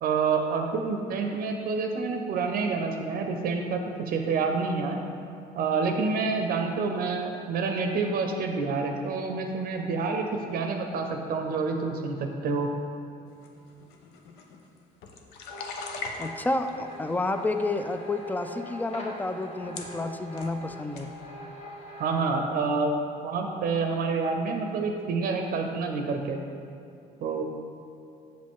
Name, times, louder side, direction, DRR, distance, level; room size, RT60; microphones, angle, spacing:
voice 1, 0.0-3.8 4.1-5.0 5.5-12.7 22.0-22.9 23.2-26.4 27.2-27.4, right 4 dB, 60° right, 4 dB, 0.6 m, -28 dB
sound 1, 13.4-16.7 17.4-17.9 18.7-18.8 19.4-19.5 19.7-20.6 20.9-21.1, left 4 dB, 85° left, 0.7 m, -40 dB
sound 2, 15.5-22.2, equal, 35° left, 1.3 m, -43 dB
voice 2, 16.2-21.1, left 2 dB, 10° left, 8 dB, 0.3 m, -30 dB
7.1 x 5.1 x 3.6 m, 2.5 s
cardioid pair, 110°, 17 cm